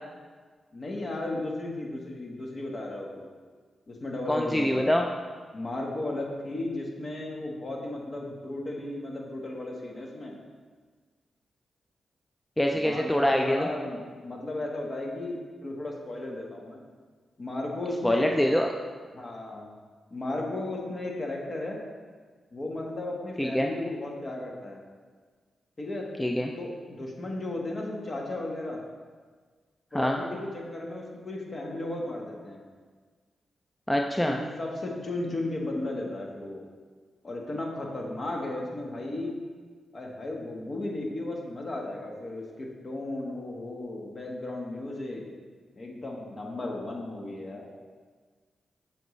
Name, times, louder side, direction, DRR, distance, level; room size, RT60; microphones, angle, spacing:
voice 1, 0.7-3.3 3.9-4.9 5.5-10.4 12.7-16.8 17.4-18.4 19.1-19.7 20.1-21.8 22.5-24.8 25.8-26.1 26.6-28.8 29.9-32.6 34.2-36.6 37.2-39.3 39.9-45.2 45.7-47.6, left 2 dB, 45° left, -1 dB, 1.4 m, -35 dB
voice 2, 4.3-5.1 12.6-13.7 18.0-18.7 23.4-23.7 26.2-26.5 29.9-30.2 33.9-34.4, equal, 10° left, 2 dB, 0.5 m, -24 dB
7.8 x 5.3 x 3.2 m, 1.5 s
supercardioid pair, 50°, 0 cm